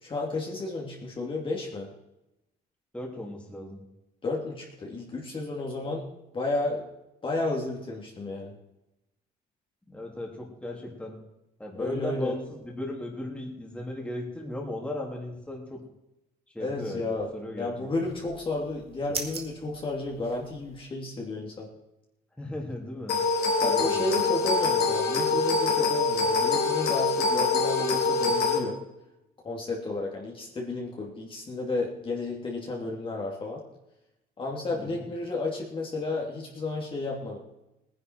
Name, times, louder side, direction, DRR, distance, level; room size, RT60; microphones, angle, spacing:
voice 1, 0.0-1.9 4.2-6.0 6.3-6.8 7.2-8.5 11.8-12.3 16.6-17.3 17.6-21.7 23.6-28.8 29.4-33.6 34.4-37.4, left 2 dB, 30° left, -2 dB, 2.7 m, -32 dB
voice 2, 2.9-3.8 9.9-11.2 11.6-15.8 16.5-18.1 22.4-23.2 23.6-24.2 34.7-35.1, left 1 dB, 5° left, -1 dB, 3.1 m, -37 dB
sound 1, 18.0-20.8, right 4 dB, 35° right, 2.0 m, -41 dB
sound 2, 23.1-28.6, left 4 dB, 75° left, 3.7 m, -25 dB
18.0 x 10.5 x 4.7 m, 0.92 s
cardioid pair, 110°, 17 cm